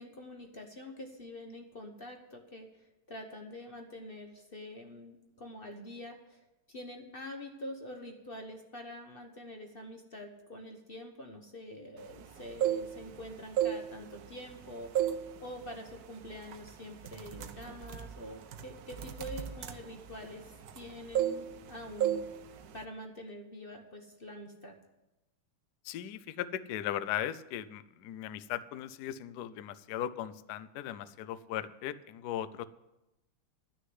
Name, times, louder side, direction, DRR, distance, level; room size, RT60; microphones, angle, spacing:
voice 1, 0.0-14.9 15.4-22.2 22.7-24.7, left 1 dB, 40° left, 3 dB, 0.9 m, -46 dB
sound 1, 12.4-13.2 13.5-14.6 15.0-15.3 15.7-15.9 16.5-16.7 17.0-20.9 21.1-21.7 22.0-22.3 22.6-22.8, right 10 dB, 65° right, 0.9 m, -32 dB
voice 2, 25.8-32.6, left 11 dB, 80° left, 16 dB, 0.9 m, -38 dB
11.5 x 6.4 x 9.5 m, 0.96 s
omnidirectional pair, 2.4 m